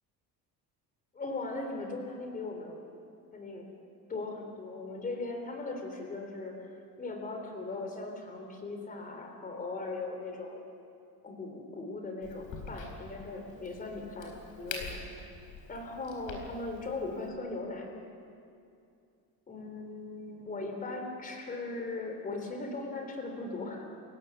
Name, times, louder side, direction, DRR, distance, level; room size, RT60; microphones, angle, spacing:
voice 1, 1.1-2.8 3.3-3.7 4.1-6.7 7.0-10.6 11.2-15.3 15.7-17.9 19.5-23.8, left 3 dB, 25° left, 4 dB, 3.6 m, -39 dB
Crack, 12.2-17.3, left 4 dB, 55° left, 4.3 m, -45 dB
29.0 x 16.5 x 7.2 m, 2.5 s
cardioid pair, 160°, 36 cm